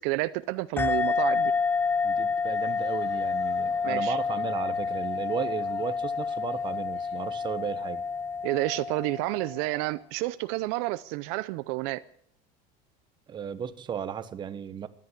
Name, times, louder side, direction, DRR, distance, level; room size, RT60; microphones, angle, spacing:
voice 1, 0.0-1.5 3.8-4.2 8.4-12.0, right 20 dB, 65° right, 0.5 m, -30 dB
sound 1, 0.8-9.8, left 5 dB, 10° left, 0.7 m, -29 dB
voice 2, 2.0-8.0 13.3-14.9, right 8 dB, 25° right, 0.9 m, -35 dB
sound 2, 2.5-7.3, left 5 dB, 35° left, 4.6 m, -57 dB
15.5 x 11.0 x 8.0 m
cardioid pair, 150°, 18 cm